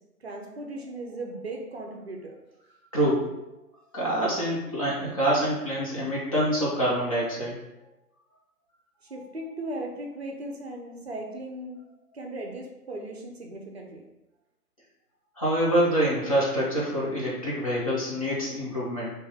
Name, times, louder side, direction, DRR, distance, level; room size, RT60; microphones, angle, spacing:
voice 1, 0.2-2.3 9.1-11.8 12.1-14.0, right 1 dB, 40° right, 1 dB, 0.6 m, -37 dB
voice 2, 2.9-3.3 3.9-7.5 15.4-19.1, equal, 20° left, -6 dB, 0.7 m, -26 dB
3.3 x 2.8 x 3.4 m, 0.95 s
figure-of-eight pair, 140°, 48 cm